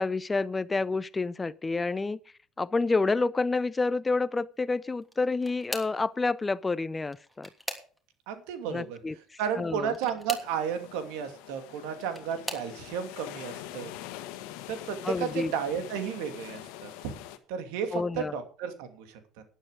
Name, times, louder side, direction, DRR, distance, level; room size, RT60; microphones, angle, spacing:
voice 1, 0.0-2.2 2.6-7.5 8.7-9.1 9.6-9.9 15.0-15.5 17.9-18.3, left 3 dB, 20° left, 0.5 m, -28 dB
sound 1, 5.0-6.1 7.0-8.3 9.9-10.6 11.7-12.7 13.5-13.8 14.2-14.4 15.7-15.8, equal, 5° right, 3.0 m, -40 dB
voice 2, 8.3-9.0 9.4-13.9 14.7-17.1 17.5-19.4, right 8 dB, 80° right, 2.6 m, -33 dB
sound 2, 10.4-17.4, left 13 dB, 80° left, 1.5 m, -44 dB
12.0 x 10.5 x 5.1 m
supercardioid pair, 90°, 0 cm